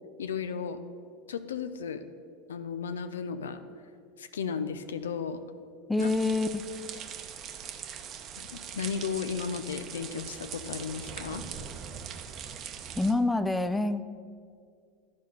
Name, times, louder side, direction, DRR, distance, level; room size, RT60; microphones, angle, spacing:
voice 1, 0.2-0.8 1.3-2.0 2.5-3.6 4.2-5.4 6.0-6.1 8.4-11.4, left 6 dB, 80° left, 11 dB, 0.5 m, -34 dB
voice 2, 5.9-6.6 13.0-14.0, left 2 dB, 5° left, 12 dB, 0.4 m, -26 dB
sound 1, 6.0-13.1, right 8 dB, 40° right, 0.7 m, -41 dB
12.0 x 4.2 x 6.3 m, 2.2 s
hypercardioid pair, 85°, 0 cm